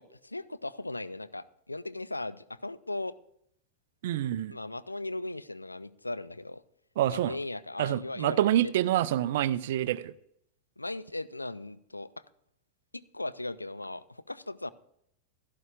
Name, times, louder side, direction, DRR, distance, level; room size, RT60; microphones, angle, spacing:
voice 1, 0.0-3.2 4.5-6.6 7.1-8.7 10.8-12.1 12.9-14.7, left 2 dB, 85° left, 0.4 m, -38 dB
voice 2, 4.0-4.5 7.0-7.3 7.8-10.1, right 12 dB, 55° right, 0.4 m, -27 dB
16.0 x 13.0 x 2.5 m
figure-of-eight pair, 90°, 0 cm